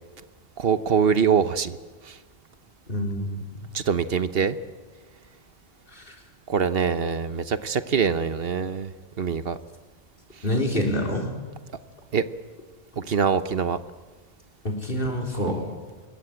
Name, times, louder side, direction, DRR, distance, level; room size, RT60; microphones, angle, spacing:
voice 1, 0.6-1.8 2.1-2.2 3.7-4.6 6.5-8.9 9.2-9.6 12.1-12.2 13.0-13.8, right 6 dB, 70° right, 12 dB, 1.2 m, -23 dB
voice 2, 2.9-3.4 5.9-6.1 10.4-11.4 14.6-15.6, equal, 60° left, 1 dB, 4.4 m, -27 dB
25.5 x 22.0 x 8.8 m, 1.3 s
omnidirectional pair, 1.0 m